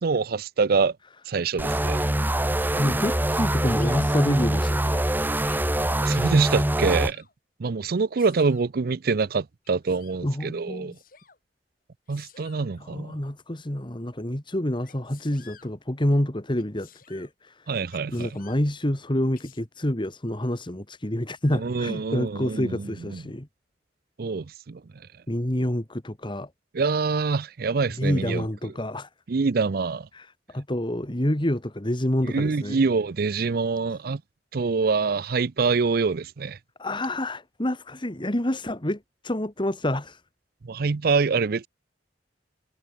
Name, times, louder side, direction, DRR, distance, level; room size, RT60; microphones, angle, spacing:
voice 1, 0.0-1.0 1.3-2.0 6.0-7.2 7.6-10.9 12.1-13.2 17.7-18.4 21.5-23.2 24.2-24.8 26.7-28.7 29.3-30.1 32.2-34.2 34.5-36.6 40.6-41.7, right 4 dB, 60° right, 0.5 m, -25 dB
sound 1, 1.6-7.1, right 1 dB, 10° right, 1.0 m, -24 dB
voice 2, 2.8-5.0 10.2-11.0 12.8-17.7 18.1-23.5 25.3-26.5 28.0-29.1 30.1-30.3 30.5-32.8 36.8-40.2, left 1 dB, 30° left, 2.1 m, -28 dB
Sneeze, 3.7-4.0 5.0-5.7 6.5-7.3 8.2-8.7 9.6-10.2 10.9-11.4 12.1-12.7 14.8-15.7 16.6-17.3 17.9-18.7 19.4-19.6, left 8 dB, 55° left, 6.4 m, -52 dB
head